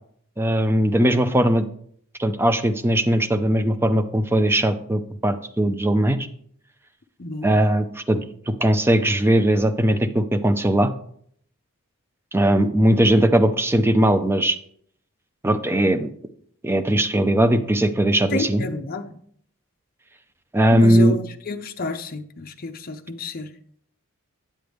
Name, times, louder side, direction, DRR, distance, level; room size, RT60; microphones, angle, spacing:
voice 1, 0.4-1.6 2.2-6.3 7.4-10.9 12.3-14.6 15.4-16.1 16.6-18.6 20.5-21.2, right 1 dB, 10° right, 9 dB, 0.4 m, -19 dB
voice 2, 7.2-7.5 18.3-19.0 20.7-23.5, left 2 dB, 40° left, 5 dB, 0.6 m, -29 dB
8.7 x 7.8 x 3.5 m, 0.63 s
head